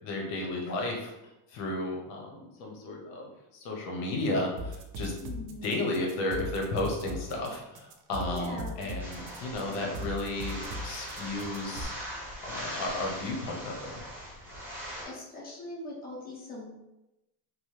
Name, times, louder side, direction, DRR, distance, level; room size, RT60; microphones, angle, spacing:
voice 1, 0.0-1.1 1.5-5.1 5.6-10.6 10.8-11.9 12.4-14.0, left 2 dB, 80° left, 0 dB, 0.8 m, -33 dB
sound 1, 4.6-11.8, equal, 90° right, 0.6 m, -38 dB
voice 2, 5.2-5.9 8.3-8.9 15.0-16.7, left 2 dB, 20° left, -6 dB, 0.9 m, -41 dB
sound 2, 9.0-15.0, equal, 5° right, 0.9 m, -40 dB
3.0 x 2.0 x 3.1 m, 0.93 s
cardioid pair, 150°, 43 cm